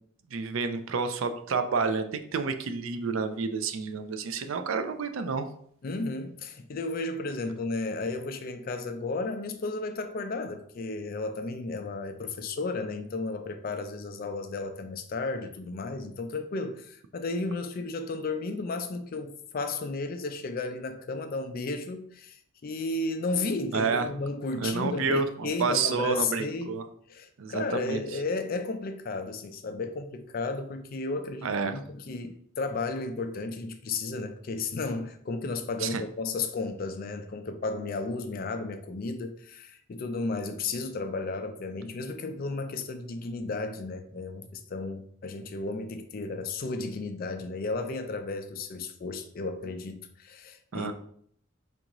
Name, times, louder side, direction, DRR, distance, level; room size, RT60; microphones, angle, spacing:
voice 1, 0.3-5.5 23.7-24.1 24.6-26.8 27.4-28.0 31.4-31.7 35.8-36.0 50.7-50.9, right 4 dB, 70° right, 0.4 m, -29 dB
voice 2, 5.8-26.7 27.1-50.9, left 3 dB, 45° left, 0.4 m, -33 dB
4.6 x 2.6 x 3.0 m
head